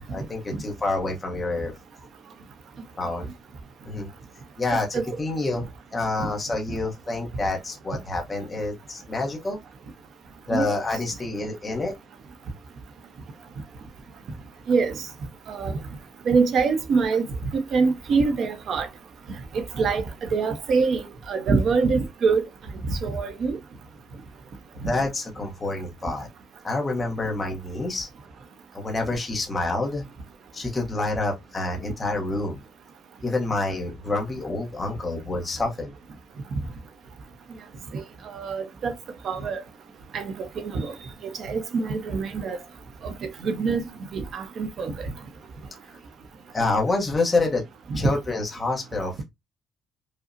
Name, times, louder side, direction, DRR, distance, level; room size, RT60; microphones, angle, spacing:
voice 1, 0.1-1.7 3.0-3.3 3.8-4.1 4.6-5.7 5.9-9.6 10.5-11.9 24.8-26.3 26.6-28.1 28.7-30.0 30.5-32.6 33.2-35.9 45.9-46.0 46.5-47.6 48.0-49.2, left 2 dB, 15° left, 0.8 m, -27 dB
voice 2, 10.5-10.8 14.7-14.9 15.5-15.8 16.3-17.2 17.5-18.9 19.5-20.0 20.3-22.4 22.9-23.6 37.9-38.0 38.3-38.9 39.2-39.6 40.1-40.9 41.2-42.6 43.0-43.8 44.1-45.1, right 4 dB, 50° right, 0.7 m, -24 dB
5.0 x 2.1 x 2.5 m
cardioid pair, 175°, 0 cm